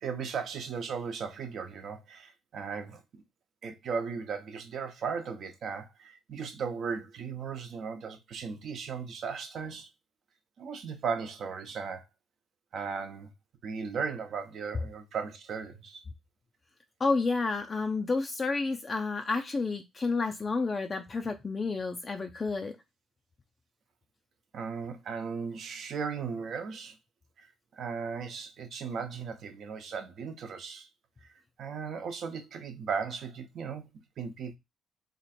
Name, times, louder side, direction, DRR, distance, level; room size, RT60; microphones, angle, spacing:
voice 1, 0.0-3.2 3.6-9.9 10.6-12.0 12.7-13.3 13.6-16.0 24.5-27.0 27.4-27.5 27.7-30.9 31.6-33.9 34.2-34.6, right 6 dB, 65° right, 0.8 m, -36 dB
voice 2, 17.0-22.8, left 3 dB, 35° left, 0.4 m, -30 dB
2.9 x 2.4 x 4.2 m
cardioid pair, 90°, 0 cm